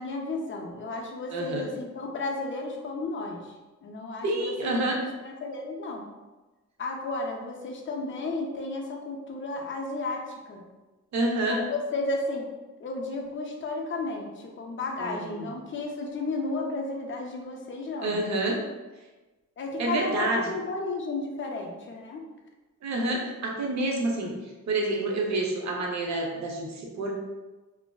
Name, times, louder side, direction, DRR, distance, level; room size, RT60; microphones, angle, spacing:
voice 1, 0.0-3.5 3.8-6.0 6.8-10.6 11.5-12.5 12.8-18.2 19.6-22.2, left 2 dB, 40° left, 1 dB, 0.4 m, -33 dB
voice 2, 1.3-1.7 4.2-5.0 11.1-11.6 15.0-15.5 18.0-18.6 19.8-20.5 22.8-24.3 24.7-27.1, right 2 dB, 60° right, 0 dB, 0.6 m, -28 dB
3.1 x 2.5 x 2.2 m, 1.2 s
wide cardioid pair, 180°, 31 cm